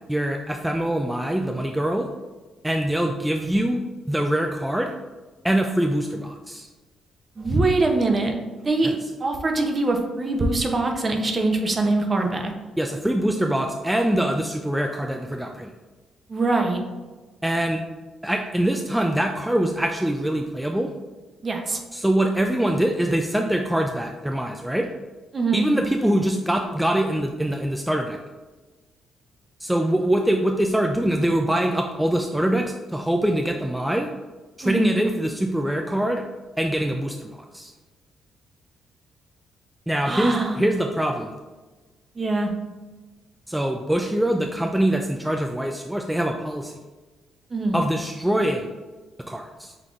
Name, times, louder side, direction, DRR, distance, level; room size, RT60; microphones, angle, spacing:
voice 1, 0.1-2.1 2.6-4.9 5.4-6.7 8.8-8.9 12.8-15.7 17.4-17.8 18.2-20.9 21.9-24.9 25.5-28.2 29.6-34.1 34.6-36.2 36.6-37.7 39.9-41.3 43.5-46.8 47.7-48.7 49.3-49.7, right 1 dB, 5° right, 3 dB, 0.3 m, -24 dB
voice 2, 7.4-8.3 8.6-8.9 9.2-12.5 16.3-16.8 21.4-21.8 25.3-25.7 34.6-35.0 40.1-40.6 42.1-42.5 47.5-47.8, right 2 dB, 35° right, 3 dB, 0.7 m, -23 dB
5.7 x 3.5 x 2.4 m, 1.3 s
cardioid pair, 90°, 0 cm